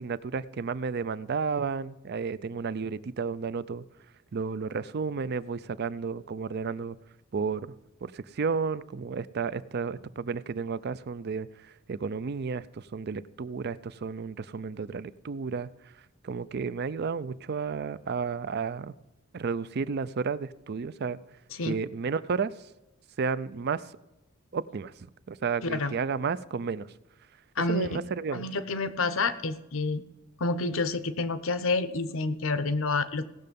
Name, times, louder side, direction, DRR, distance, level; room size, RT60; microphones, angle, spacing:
voice 1, 0.0-3.8 4.3-7.0 7.3-7.7 8.0-15.7 16.2-18.9 19.3-21.2 21.6-22.5 23.2-23.9 24.5-24.9 25.3-26.9 27.7-28.4, right 5 dB, 50° right, 17 dB, 0.4 m, -32 dB
voice 2, 25.6-25.9 27.6-28.0 28.3-30.0 30.4-33.3, left 3 dB, 70° left, 13 dB, 0.8 m, -28 dB
17.0 x 6.6 x 5.3 m, 1.0 s
head